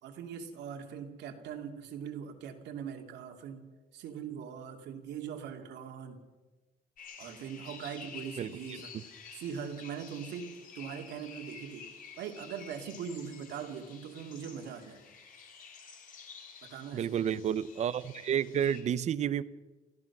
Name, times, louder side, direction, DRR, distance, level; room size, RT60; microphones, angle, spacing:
voice 1, 0.0-3.6 3.9-6.2 7.2-8.9 9.3-11.9 12.2-15.0 16.6-17.5, right 7 dB, 85° right, 4 dB, 2.7 m, -41 dB
sound 1, 7.0-18.8, left 6 dB, 55° left, 4.2 m, -51 dB
voice 2, 16.9-19.4, right 9 dB, 40° right, 16 dB, 0.7 m, -30 dB
29.0 x 15.0 x 6.0 m, 1.2 s
cardioid pair, 175°, 17 cm